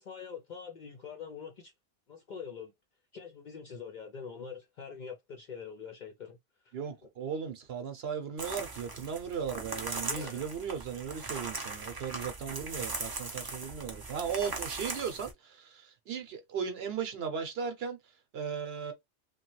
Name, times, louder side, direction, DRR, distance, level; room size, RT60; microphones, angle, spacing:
voice 1, 0.0-1.7 2.1-2.7 3.1-6.4 6.6-6.8 10.0-10.4, left 6 dB, 55° left, 0.5 m, -44 dB
voice 2, 6.7-18.0 18.3-18.9, right 7 dB, 65° right, 0.9 m, -37 dB
sound 1, 8.4-15.3, right 3 dB, 30° right, 0.4 m, -39 dB
3.1 x 2.2 x 3.0 m
omnidirectional pair, 1.2 m